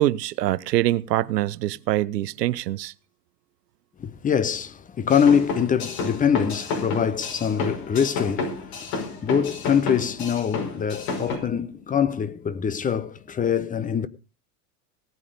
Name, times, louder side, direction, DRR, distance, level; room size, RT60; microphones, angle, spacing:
voice 1, 0.0-2.9, right 15 dB, 80° right, 0.8 m, -24 dB
voice 2, 4.0-14.1, left 7 dB, 15° left, 0.8 m, -24 dB
sound 1, 5.1-11.4, left 3 dB, 45° left, 5.5 m, -31 dB
18.0 x 8.6 x 5.1 m
hypercardioid pair, 110°, 48 cm